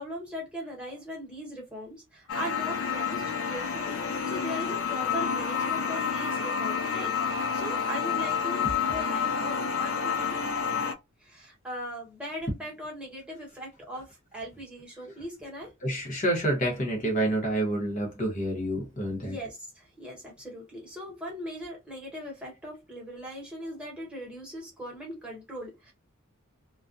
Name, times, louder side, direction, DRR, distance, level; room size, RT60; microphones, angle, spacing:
voice 1, 0.0-10.4 11.2-15.7 19.2-25.9, equal, 5° right, 1.0 m, -39 dB
sound 1, 2.3-10.9, left 6 dB, 70° left, 0.5 m, -29 dB
voice 2, 15.8-19.4, right 1 dB, 35° left, 0.8 m, -28 dB
2.3 x 2.1 x 2.5 m
head